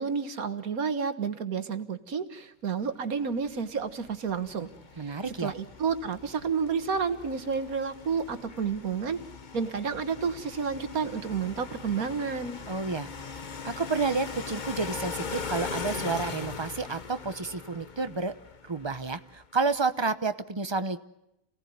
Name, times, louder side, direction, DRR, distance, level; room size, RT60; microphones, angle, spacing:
voice 1, 0.0-4.7 5.0-9.2 9.5-12.6, right 6 dB, 90° right, 10 dB, 1.9 m, -30 dB
sound 1, 3.3-19.5, left 5 dB, 35° left, 1.1 m, -40 dB
voice 2, 5.0-5.5 12.7-13.1 13.6-18.3 18.7-21.0, right 4 dB, 20° right, 11 dB, 0.9 m, -30 dB
28.0 x 18.0 x 9.4 m, 0.85 s
omnidirectional pair, 1.5 m